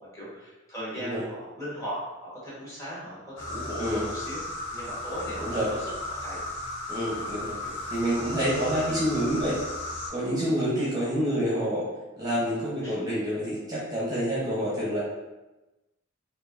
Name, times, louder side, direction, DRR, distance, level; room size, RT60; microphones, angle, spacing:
voice 1, 0.1-6.4 7.6-7.7 8.4-8.5 10.7-10.8 12.8-13.0, equal, 15° left, -8 dB, 1.3 m, -38 dB
sound 1, 3.4-10.1, left 2 dB, 65° left, 1.1 m, -35 dB
voice 2, 5.4-5.7 6.9-7.6 7.9-9.6 10.1-11.8 12.2-15.0, equal, 20° right, -8 dB, 0.8 m, -27 dB
4.4 x 2.6 x 2.5 m, 1.1 s
head